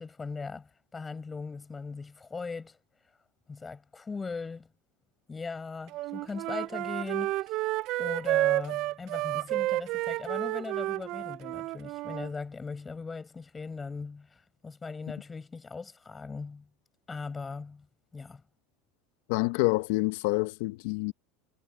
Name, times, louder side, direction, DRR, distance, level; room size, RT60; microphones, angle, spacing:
voice 1, 0.0-2.8 3.5-4.7 5.3-7.6 8.0-16.7 17.1-17.9 18.1-18.4, left 4 dB, 20° left, 7.4 m, -39 dB
Wind instrument woodwind instrument, 5.9-12.3, right 17 dB, 55° right, 0.5 m, -31 dB
voice 2, 19.3-21.1, left 23 dB, 70° left, 1.0 m, -27 dB
supercardioid pair, 110°, 0 cm